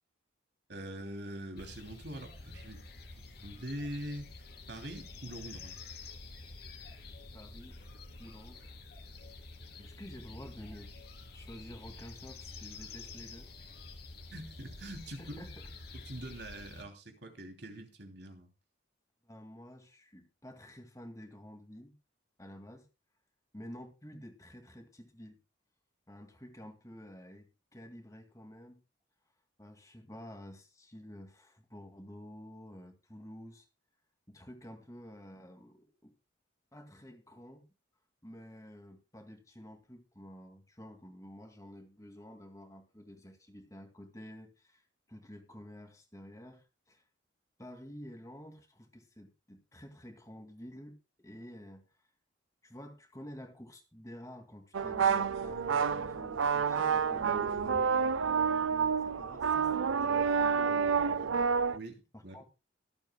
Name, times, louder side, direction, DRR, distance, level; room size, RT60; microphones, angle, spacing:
voice 1, 0.7-2.8 3.2-4.3 4.7-5.8 14.3-15.4 15.9-18.5 61.7-62.4, right 1 dB, 55° right, 4 dB, 3.0 m, -43 dB
sound 1, 1.6-16.8, left 3 dB, 50° left, 2.6 m, -49 dB
voice 2, 7.3-7.8 8.2-8.8 9.8-10.9 11.3-13.5 15.2-15.7 19.2-21.9 22.4-22.9 23.5-25.4 26.1-28.8 29.6-33.7 34.3-36.1 36.7-37.7 38.2-47.0 47.6-52.0 52.6-61.7 62.1-62.5, equal, 15° left, 5 dB, 2.2 m, -50 dB
sound 2, 54.7-61.8, right 6 dB, 85° right, 0.5 m, -29 dB
24.5 x 8.6 x 2.3 m, 0.28 s
head